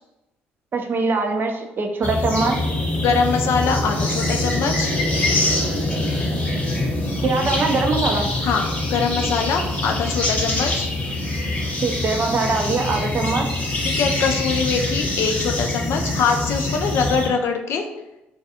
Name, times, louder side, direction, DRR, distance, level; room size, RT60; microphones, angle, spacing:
voice 1, 0.7-2.6 7.2-8.3 11.8-13.6, right 3 dB, 45° right, 4 dB, 0.4 m, -22 dB
sound 1, 2.0-17.3, left 2 dB, 30° left, 0.8 m, -24 dB
voice 2, 3.0-4.9 8.4-10.9 13.8-17.9, left 5 dB, 60° left, 4 dB, 0.3 m, -23 dB
2.3 x 2.3 x 2.7 m, 0.95 s
hypercardioid pair, 55°, 5 cm